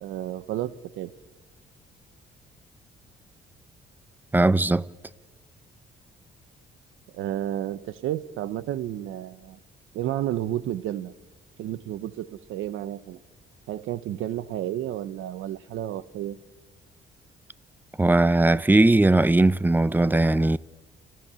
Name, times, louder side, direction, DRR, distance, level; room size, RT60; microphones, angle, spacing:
voice 1, 0.0-1.1 7.1-9.6 9.9-11.1 11.6-13.2 13.7-16.4, right 12 dB, 90° right, 0.9 m, -31 dB
voice 2, 4.3-4.8 18.0-20.6, right 2 dB, 10° right, 0.6 m, -19 dB
29.5 x 13.0 x 6.9 m
cardioid pair, 90°, 20 cm